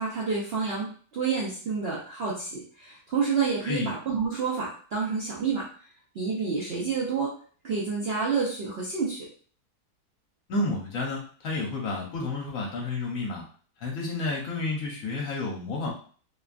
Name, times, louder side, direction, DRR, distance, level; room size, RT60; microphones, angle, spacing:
voice 1, 0.0-5.7 6.1-7.3 7.6-9.3, right 5 dB, 60° right, -5 dB, 0.6 m, -29 dB
voice 2, 10.5-13.4 13.8-15.9, left 3 dB, 65° left, -2 dB, 1.1 m, -30 dB
2.9 x 2.2 x 2.4 m, 0.43 s
omnidirectional pair, 1.7 m